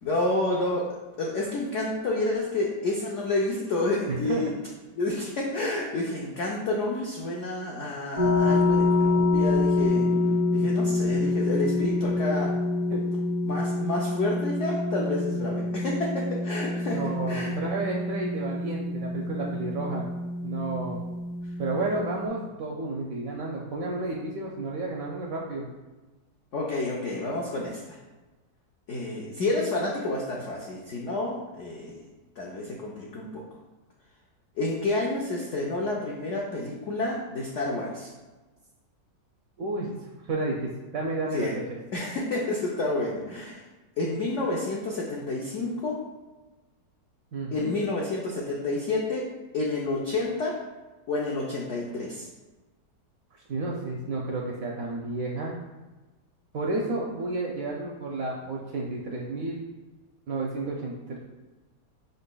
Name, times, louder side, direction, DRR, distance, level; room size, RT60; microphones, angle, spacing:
voice 1, 0.0-4.5 5.0-10.1 10.5-12.6 13.4-17.6 26.5-28.0 28.9-32.0 32.4-33.4 34.6-38.1 41.3-41.5 41.9-43.6 44.0-46.0 47.5-50.6 51.1-52.3, left 2 dB, 80° left, -2 dB, 0.6 m, -29 dB
voice 2, 4.1-4.4 12.9-13.0 16.9-20.1 20.4-21.0 21.6-25.6 39.6-41.8 47.3-47.7 53.5-55.6 56.5-59.7 60.3-61.2, right 2 dB, 70° right, -2 dB, 0.8 m, -31 dB
sound 1, 8.2-22.3, left 2 dB, 50° left, 0.9 m, -26 dB
5.4 x 4.0 x 2.2 m, 1.2 s
omnidirectional pair, 1.9 m